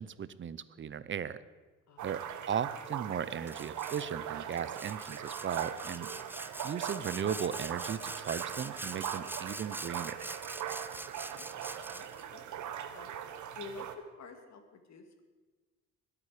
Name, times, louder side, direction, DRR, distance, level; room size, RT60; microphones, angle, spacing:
voice 1, 0.0-1.4 2.0-6.1 6.6-10.2, right 8 dB, 40° right, 16 dB, 0.7 m, -37 dB
voice 2, 1.9-2.2 5.7-6.2 10.8-15.2, left 4 dB, 65° left, 5 dB, 2.1 m, -52 dB
sound 1, 2.0-14.0, right 9 dB, 75° right, 1.1 m, -40 dB
Sawing, 3.5-4.1 4.5-12.2, right 2 dB, 5° right, 0.5 m, -44 dB
20.5 x 8.6 x 5.0 m, 1.3 s
cardioid pair, 90°, 30 cm